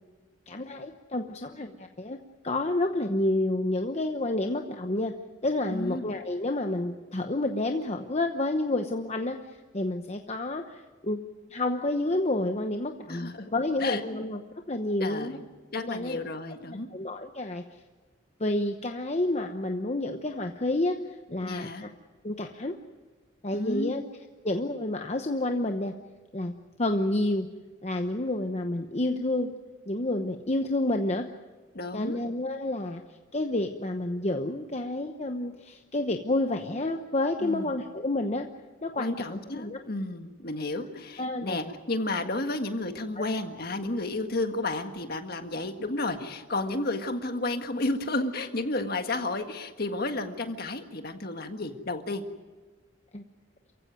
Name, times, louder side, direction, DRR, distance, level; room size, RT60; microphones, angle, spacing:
voice 1, 0.5-2.2 2.4-5.1 5.4-9.4 9.7-11.2 11.5-14.4 14.7-15.4 15.7-16.2 16.6-17.6 18.4-21.0 21.3-21.9 22.2-22.8 23.4-24.0 24.4-25.9 26.3-26.5 26.8-27.5 27.8-29.5 29.9-31.3 31.9-33.0 33.3-38.5 38.8-39.8 41.2-41.6 43.2-43.3 53.1-53.2, left 2 dB, 35° left, 5 dB, 1.0 m, -29 dB
voice 2, 5.7-6.2 13.1-13.5 13.8-14.2 15.0-15.5 15.7-16.9 21.4-21.9 23.5-24.0 31.7-32.2 37.4-37.7 39.0-52.2, left 2 dB, 50° left, 6 dB, 1.7 m, -32 dB
28.0 x 15.5 x 9.3 m, 1.3 s
head